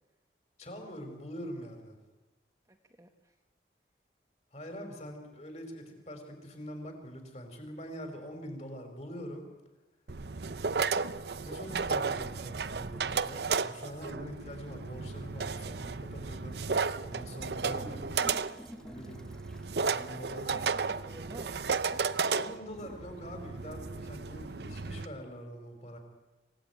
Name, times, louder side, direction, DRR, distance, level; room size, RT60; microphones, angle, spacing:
voice 1, 0.6-2.0 4.5-9.5 11.4-18.1 18.8-19.2 19.8-20.6 22.3-26.0, equal, 40° left, 4 dB, 4.9 m, -44 dB
voice 2, 2.7-3.3 20.5-21.6 21.9-22.1, right 1 dB, 20° right, 4 dB, 1.3 m, -51 dB
sound 1, 10.1-25.1, right 5 dB, 70° right, 0.7 m, -34 dB
sound 2, 17.5-19.8 21.1-21.5 22.7-23.0, equal, 5° left, 1.5 m, -50 dB
26.0 x 17.0 x 9.4 m, 1.2 s
head